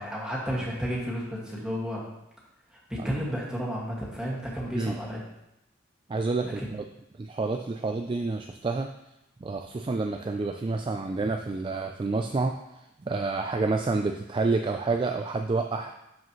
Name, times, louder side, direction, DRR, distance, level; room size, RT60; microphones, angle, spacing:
voice 1, 0.0-2.0 2.9-5.2 6.4-6.7, equal, 5° right, -6 dB, 1.9 m, -32 dB
voice 2, 6.1-6.8 7.2-8.9 9.4-12.5 13.1-15.9, right 3 dB, 25° right, 5 dB, 0.3 m, -28 dB
11.5 x 5.0 x 3.1 m, 0.89 s
head